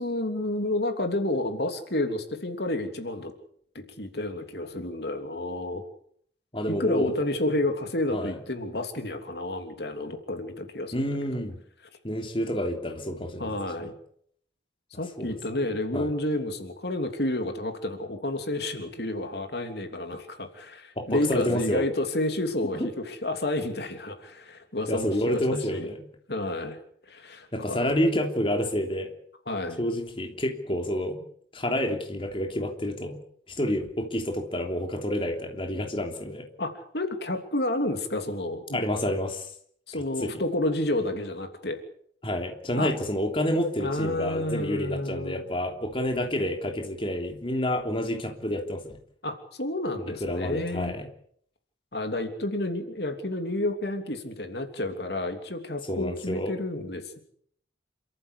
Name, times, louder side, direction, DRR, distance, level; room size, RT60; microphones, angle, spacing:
voice 1, 0.0-3.3 3.7-5.8 6.7-11.1 13.4-13.9 14.9-25.9 26.3-26.8 27.1-27.8 29.5-29.8 36.6-38.8 39.9-41.8 42.7-42.9 43.8-45.4 49.2-50.9 51.9-57.2, left 1 dB, 65° left, 6 dB, 3.1 m, -30 dB
voice 2, 6.5-7.1 8.1-8.4 10.9-11.6 12.0-13.5 13.8-13.9 15.2-15.4 15.9-16.1 21.0-21.9 22.7-22.9 24.9-26.0 27.5-29.1 29.8-31.2 31.5-33.2 33.6-36.4 38.7-39.5 40.2-40.3 42.2-49.0 50.2-51.1 55.9-56.5, left 1 dB, 30° left, 3 dB, 3.3 m, -29 dB
28.0 x 14.0 x 8.4 m, 0.64 s
head